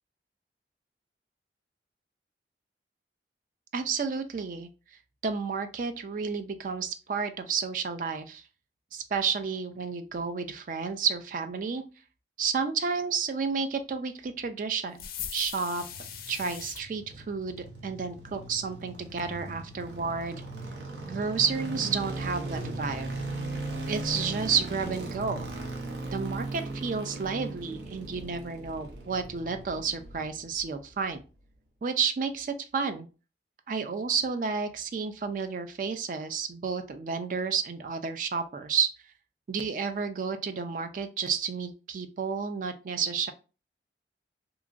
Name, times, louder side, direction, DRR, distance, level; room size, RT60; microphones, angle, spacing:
voice 1, 3.7-4.7 5.2-8.4 8.9-11.8 12.4-15.8 16.3-20.4 21.0-23.1 23.9-25.5 26.1-31.2 31.8-33.1 33.7-38.9 39.5-43.3, right 5 dB, 45° right, 9 dB, 0.3 m, -31 dB
sound 1, 15.0-16.8, left 9 dB, 55° left, 0.4 m, -39 dB
sound 2, 15.7-30.8 31.1-31.2, right 2 dB, 80° right, 0.6 m, -38 dB
2.8 x 2.5 x 2.4 m, 0.33 s
head